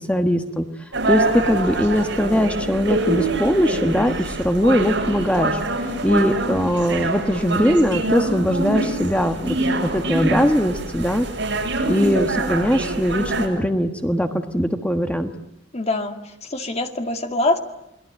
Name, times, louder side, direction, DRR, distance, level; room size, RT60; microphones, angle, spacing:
voice 1, 0.1-0.7 1.1-5.6 6.0-11.3 11.9-15.3, equal, 5° left, 6 dB, 1.4 m, -20 dB
sound 1, 0.9-13.5, right 2 dB, 65° right, 7.2 m, -25 dB
voice 2, 15.7-17.6, left 2 dB, 35° left, 6 dB, 2.2 m, -24 dB
29.0 x 21.0 x 9.0 m, 0.84 s
head